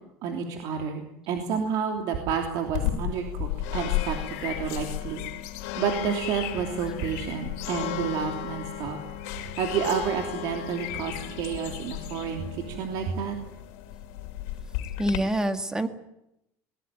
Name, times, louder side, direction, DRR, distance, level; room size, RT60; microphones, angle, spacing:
voice 1, 0.2-5.2 5.8-9.0 9.3-13.4, right 7 dB, 60° right, 3 dB, 3.1 m, -30 dB
sound 1, 2.7-15.2, left 12 dB, 85° left, 3.3 m, -34 dB
voice 2, 15.0-15.9, right 1 dB, 10° right, 7 dB, 2.0 m, -26 dB
22.0 x 20.0 x 9.4 m, 0.84 s
cardioid pair, 140°, 8 cm